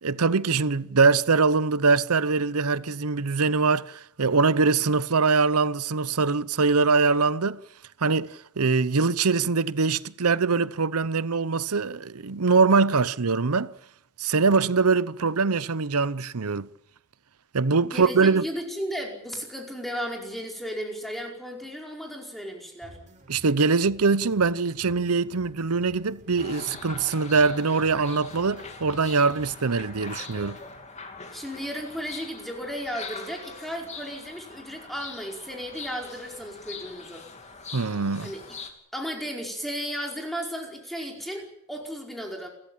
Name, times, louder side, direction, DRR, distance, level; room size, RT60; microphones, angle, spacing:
voice 1, 0.0-7.6 8.0-13.7 14.2-16.7 17.5-18.4 23.3-30.6 37.7-38.3, right 4 dB, 75° right, 0.8 m, -23 dB
voice 2, 17.7-23.0 31.3-37.3 38.2-38.4 38.9-42.5, equal, ahead, 5.0 m, -35 dB
sound 1, 22.8-30.8, right 1 dB, 35° right, 5.4 m, -52 dB
sound 2, 26.4-38.7, left 4 dB, 30° left, 3.1 m, -42 dB
29.0 x 14.0 x 9.0 m
head